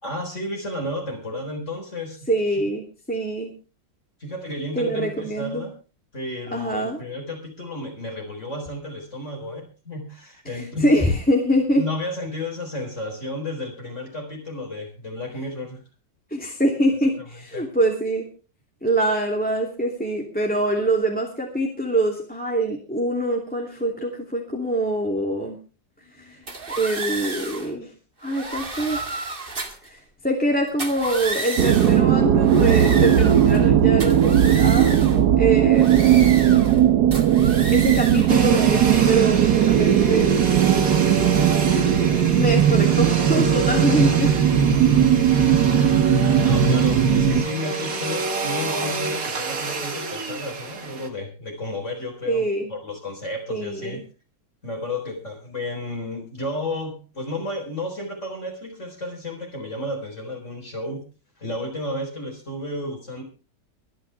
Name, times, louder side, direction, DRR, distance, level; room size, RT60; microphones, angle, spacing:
voice 1, 0.0-2.3 4.2-5.7 6.1-11.0 11.8-15.8 17.5-17.7 26.0-26.5 46.0-52.4 52.7-54.0 54.6-61.0 61.4-63.2, left 1 dB, 40° left, 1 dB, 4.4 m, -32 dB
voice 2, 2.3-3.5 4.8-5.7 6.5-7.0 10.5-11.9 16.3-18.3 18.8-25.6 26.2-26.4 26.7-27.9 28.2-29.0 29.8-35.0 35.4-36.1 37.7-40.3 42.3-44.3 52.3-52.7 53.5-54.0, right 1 dB, 5° left, 0 dB, 2.6 m, -24 dB
sound 1, 26.5-27.7 28.2-29.9 30.7-32.0 32.4-33.7 34.0-35.2 35.7-36.8 37.1-38.4, right 3 dB, 30° right, 2.1 m, -32 dB
sound 2, 31.6-47.4, right 9 dB, 65° right, 1.5 m, -17 dB
Domestic sounds home sounds, 38.3-51.1, right 3 dB, 50° right, 2.2 m, -28 dB
23.5 x 10.5 x 3.4 m, 0.34 s
omnidirectional pair, 2.0 m